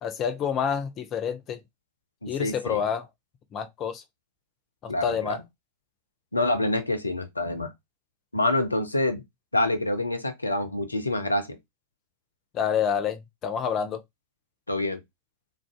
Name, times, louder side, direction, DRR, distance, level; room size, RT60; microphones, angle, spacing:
voice 1, 0.0-1.6 2.3-3.1 3.5-4.0 4.8-5.4 12.5-14.0, left 7 dB, 30° left, 0.7 m, -28 dB
voice 2, 2.2-2.8 4.9-5.4 6.3-7.7 8.3-9.2 9.5-11.6 14.7-15.0, left 2 dB, 80° left, 0.6 m, -26 dB
3.9 x 2.6 x 3.5 m
figure-of-eight pair, 90°, 0 cm